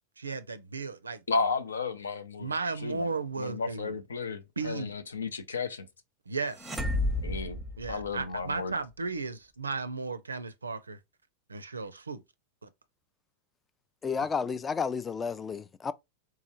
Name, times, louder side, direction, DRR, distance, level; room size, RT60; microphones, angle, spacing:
voice 1, 0.2-1.2 2.4-3.9 4.6-4.9 6.3-6.8 7.8-11.0 11.5-12.2 12.6-12.7 14.2-14.3, right 4 dB, 75° right, 0.4 m, -35 dB
voice 2, 1.3-2.5 2.8-3.1 3.4-5.9 7.2-7.6 7.9-8.8, left 4 dB, 70° left, 0.5 m, -33 dB
sound 1, 6.5-8.5, left 1 dB, 5° right, 0.7 m, -32 dB
voice 3, 14.0-15.9, left 5 dB, 20° left, 0.3 m, -31 dB
3.6 x 3.1 x 2.8 m
figure-of-eight pair, 90°, 0 cm